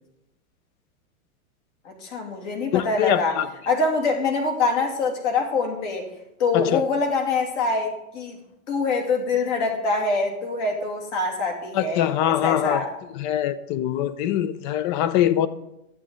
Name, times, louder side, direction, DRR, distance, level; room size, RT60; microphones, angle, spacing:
voice 1, 1.8-3.3 3.7-6.1 6.4-8.4 8.7-12.9, left 3 dB, 55° left, 2.7 m, -24 dB
voice 2, 2.7-3.5 6.5-6.8 11.7-12.8 13.1-15.5, left 11 dB, 35° left, 0.5 m, -23 dB
11.0 x 8.4 x 3.8 m
hypercardioid pair, 130°, 43 cm